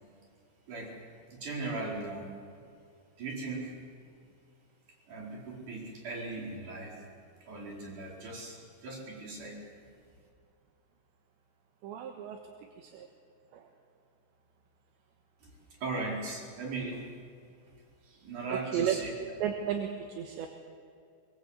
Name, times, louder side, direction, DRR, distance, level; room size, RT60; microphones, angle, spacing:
voice 1, 1.3-2.3 3.2-3.7 5.1-7.0 7.4-9.7 15.4-15.5 15.8-17.1 18.2-19.1, right 3 dB, 40° right, -2 dB, 5.8 m, -38 dB
voice 2, 11.8-12.4 12.8-13.1 13.5-13.7 18.0-18.2 18.5-20.5, right 8 dB, 75° right, 4 dB, 3.3 m, -34 dB
24.0 x 22.5 x 8.2 m, 2.4 s
omnidirectional pair, 5.7 m